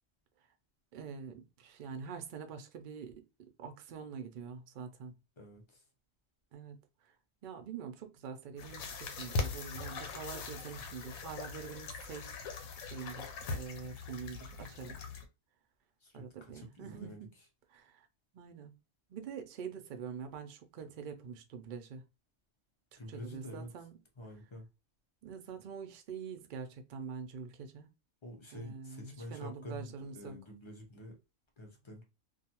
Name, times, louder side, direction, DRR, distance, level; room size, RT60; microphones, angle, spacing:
voice 1, 0.9-5.1 6.5-6.8 7.4-12.4 12.8-14.9 16.1-17.3 17.7-18.1 18.3-18.7 19.1-22.0 22.9-23.9 25.2-27.9 28.5-30.4, right 6 dB, 70° right, 0.5 m, -45 dB
voice 2, 5.4-5.8 16.0-17.3 23.0-23.7 24.2-24.7 28.2-31.1 31.6-32.0, left 1 dB, 40° left, 0.4 m, -48 dB
sound 1, 8.6-15.2, left 3 dB, 85° left, 1.0 m, -41 dB
2.5 x 2.3 x 2.8 m
omnidirectional pair, 1.4 m